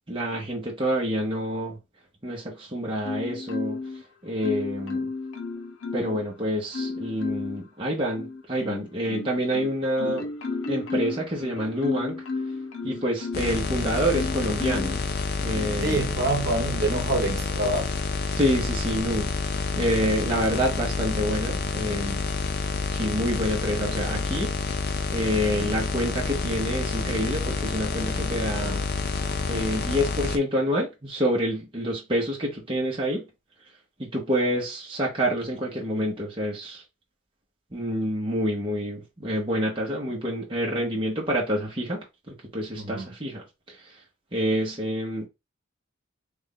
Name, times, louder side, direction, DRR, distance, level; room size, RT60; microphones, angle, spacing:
voice 1, 0.1-1.8 2.2-5.1 5.9-10.3 10.7-12.2 12.8-15.0 15.4-16.0 18.4-22.2 22.9-29.1 29.5-33.3 34.0-36.8 37.7-44.0 44.3-45.3, equal, 25° right, 0.9 m, -28 dB
Marimba xylophone, 3.0-4.0 4.4-6.3 6.7-7.6 8.2-13.6 14.1-15.0 15.5-15.8, left 3 dB, 80° left, 0.7 m, -33 dB
sound 1, 13.3-30.4, left 4 dB, 50° left, 0.5 m, -28 dB
voice 2, 15.8-18.0 19.7-19.8 42.8-43.1, right 2 dB, 55° right, 1.1 m, -27 dB
3.3 x 2.5 x 3.8 m
head